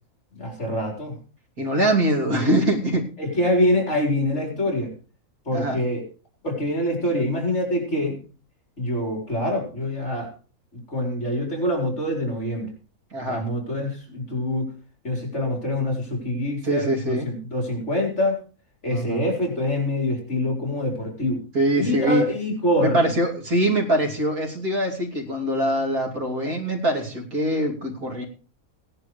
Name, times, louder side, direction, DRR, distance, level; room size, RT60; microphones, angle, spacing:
voice 1, 0.3-1.2 3.2-4.9 5.4-6.0 6.4-8.2 8.8-10.3 10.7-12.7 13.3-14.7 15.0-18.4 18.8-21.4 21.7-23.1, left 1 dB, 50° left, 0 dB, 4.8 m, -25 dB
voice 2, 1.6-3.1 5.5-5.8 13.1-13.4 16.6-17.3 18.9-19.2 21.5-22.2 22.8-28.3, right 1 dB, 75° right, -1 dB, 3.3 m, -23 dB
18.5 x 11.0 x 3.3 m, 0.37 s
omnidirectional pair, 1.5 m